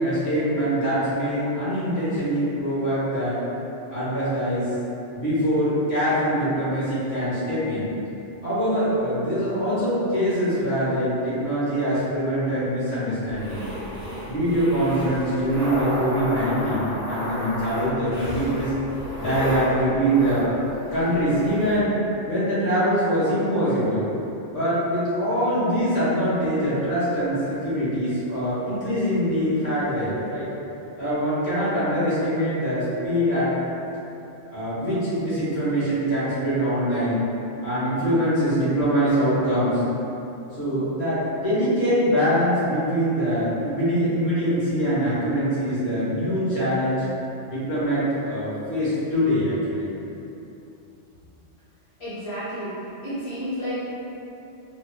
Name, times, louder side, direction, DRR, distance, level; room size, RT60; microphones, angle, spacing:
voice 1, 0.0-3.4 3.9-4.7 5.1-7.9 8.4-13.6 14.2-18.7 19.2-20.5 20.9-21.9 22.3-24.1 24.5-30.5 31.0-33.5 34.5-37.3 37.6-39.8 40.6-47.0 47.5-49.9, equal, 60° left, -12 dB, 1.4 m, -23 dB
sound 1, 13.3-21.8, equal, 15° left, 1.0 m, -32 dB
voice 2, 52.0-52.7 53.0-53.8, equal, 35° left, -12 dB, 0.5 m, -31 dB
4.1 x 2.4 x 2.2 m, 3.0 s
omnidirectional pair, 1.3 m